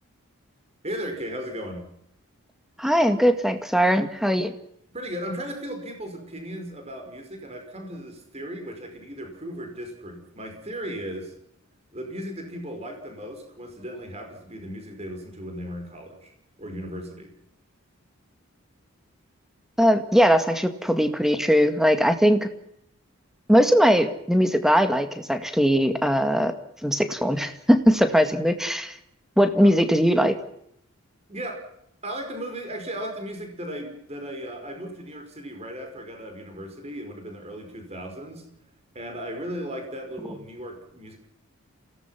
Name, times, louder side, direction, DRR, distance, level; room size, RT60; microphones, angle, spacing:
voice 1, 0.8-1.9 4.9-11.3 11.9-16.3 16.6-17.3 29.6-29.8 31.3-31.7 32.0-38.5 39.0-41.2, equal, 30° right, 4 dB, 5.3 m, -36 dB
voice 2, 2.8-4.5 19.8-22.5 23.5-26.5 26.8-28.9 29.4-30.4, equal, ahead, 8 dB, 1.8 m, -20 dB
28.5 x 18.0 x 5.9 m, 0.73 s
head